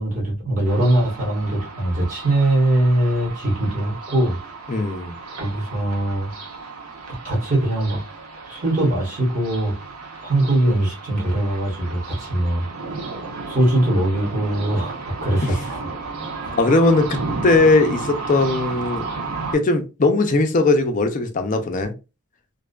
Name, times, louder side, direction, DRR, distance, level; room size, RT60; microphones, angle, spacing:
voice 1, 0.0-4.4 5.4-6.3 7.2-8.0 8.4-9.8 10.2-12.7 13.5-15.9 16.4-16.5, right 1 dB, 35° right, 1.1 m, -21 dB
sound 1, 0.7-19.5, right 4 dB, 85° right, 0.8 m, -34 dB
voice 2, 4.7-5.1 15.4-15.5 16.5-19.1 19.5-21.9, left 2 dB, 35° left, 0.4 m, -19 dB
2.5 x 2.3 x 2.2 m
head